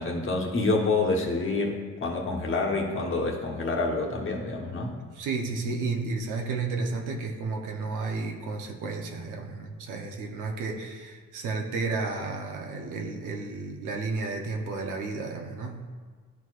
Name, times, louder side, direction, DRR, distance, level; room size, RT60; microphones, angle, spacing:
voice 1, 0.0-5.0, left 3 dB, 40° left, 0 dB, 1.2 m, -27 dB
voice 2, 5.2-15.9, right 3 dB, 85° right, 2 dB, 1.0 m, -32 dB
11.5 x 4.6 x 2.5 m, 1.5 s
cardioid pair, 90°, 30 cm